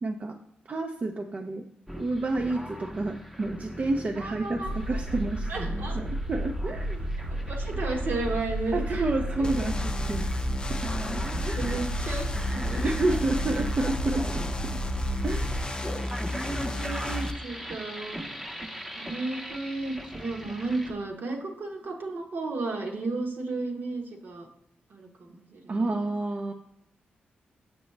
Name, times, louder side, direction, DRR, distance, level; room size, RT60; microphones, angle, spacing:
voice 1, 0.0-0.4 0.7-1.7 2.0-5.7 5.9-7.0 8.7-10.3 10.7-10.8 11.4-11.6 12.8-14.7 15.2-15.5 25.7-26.5, right 2 dB, 45° right, 3 dB, 0.5 m, -29 dB
sound 1, 1.9-20.9, equal, 5° right, 0.8 m, -40 dB
voice 2, 4.2-4.7 5.5-6.0 7.5-9.0 9.4-9.7 11.3-12.3 12.5-13.2 15.8-18.3 18.6-18.7 18.9-24.5 24.9-25.7, right 3 dB, 65° right, 2 dB, 1.1 m, -34 dB
sound 2, 4.6-15.6, right 1 dB, 85° right, 1.4 m, -32 dB
sound 3, 9.4-17.3, left 1 dB, 25° left, 0.5 m, -33 dB
6.0 x 6.0 x 3.2 m, 0.73 s
cardioid pair, 65°, 4 cm